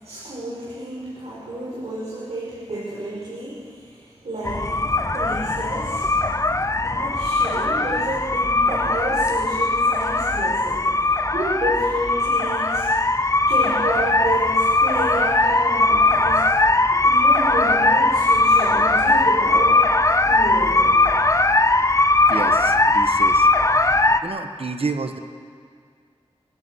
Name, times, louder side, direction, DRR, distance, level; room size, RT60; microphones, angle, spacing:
voice 1, 0.0-4.8 5.1-6.1 6.7-10.9 11.3-12.9 13.5-16.5 16.9-19.8 20.3-21.0, right 1 dB, 80° right, -6 dB, 5.3 m, -30 dB
sound 1, 4.4-24.2, left 2 dB, 30° left, 0.8 m, -19 dB
voice 2, 22.3-23.5 24.2-25.2, right 4 dB, 60° right, 7 dB, 1.4 m, -29 dB
28.0 x 16.0 x 6.4 m, 2.1 s
wide cardioid pair, 85°, 11 cm